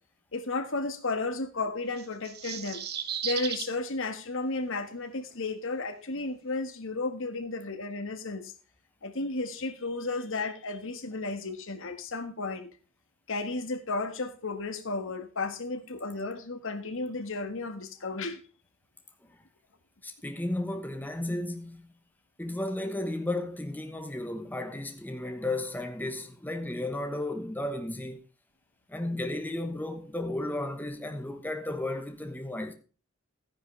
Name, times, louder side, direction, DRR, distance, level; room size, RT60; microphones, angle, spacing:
voice 1, 0.3-2.8 3.2-8.5 9.0-12.7 13.3-18.4, left 3 dB, 65° left, 1.6 m, -33 dB
sound 1, 2.0-3.7, right 8 dB, 50° right, 1.4 m, -35 dB
voice 2, 20.0-21.9 22.4-28.2 28.9-32.7, left 1 dB, 10° left, 1.2 m, -34 dB
13.5 x 10.5 x 3.4 m
head